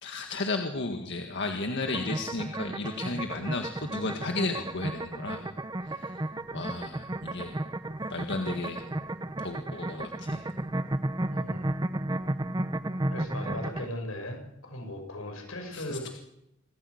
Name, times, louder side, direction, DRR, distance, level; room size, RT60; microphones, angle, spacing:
voice 1, 0.0-5.4 5.8-6.2 6.5-7.6 8.1-8.8 9.4-10.4 15.7-16.1, left 3 dB, 60° left, 4 dB, 1.8 m, -34 dB
sound 1, 1.9-13.9, right 1 dB, 20° right, 0.8 m, -33 dB
voice 2, 11.3-11.7 13.1-16.1, left 1 dB, 85° left, 4 dB, 6.0 m, -38 dB
26.0 x 14.0 x 8.0 m, 0.83 s
head